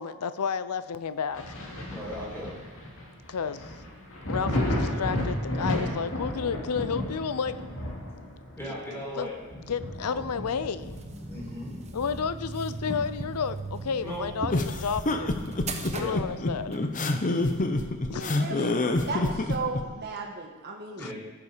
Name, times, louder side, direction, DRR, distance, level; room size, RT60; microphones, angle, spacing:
voice 1, 0.0-1.5 3.3-3.7 4.3-7.5 8.9-9.3 9.7-11.0 11.9-15.4 15.9-16.8 18.1-18.3 18.7-18.8 21.0-21.1, left 6 dB, 90° left, 14 dB, 0.6 m, -31 dB
Thunder, 1.3-12.7 13.1-14.6 14.9-15.0 15.6-16.9 18.3-18.4, left 1 dB, 65° left, 2.4 m, -34 dB
voice 2, 1.9-2.5 8.6-9.3 10.1-10.2 11.3-11.8 14.0-14.3 15.9-16.2 20.9-21.1, equal, 10° left, -5 dB, 4.2 m, -37 dB
sound 1, 10.8-16.9, right 2 dB, 30° right, 1.0 m, -38 dB
sound 2, 14.5-19.8, left 2 dB, 35° left, 0.8 m, -27 dB
voice 3, 18.1-18.8 19.1-21.0, right 3 dB, 50° right, 0 dB, 1.5 m, -35 dB
16.0 x 7.0 x 5.1 m, 1.3 s
head